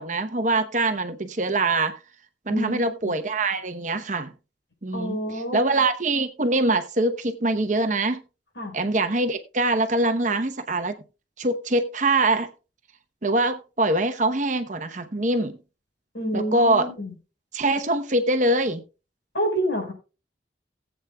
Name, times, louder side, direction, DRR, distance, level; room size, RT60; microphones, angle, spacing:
voice 1, 0.0-1.9 2.5-4.3 4.8-8.2 8.7-10.9 11.4-12.5 13.2-15.6 16.3-16.9 17.5-18.8, right 2 dB, 45° right, 8 dB, 0.9 m, -23 dB
voice 2, 2.5-3.1 4.9-5.6 8.6-8.8 16.1-17.1 19.3-19.9, equal, 75° left, 2 dB, 4.8 m, -28 dB
18.5 x 8.1 x 2.3 m, 0.31 s
head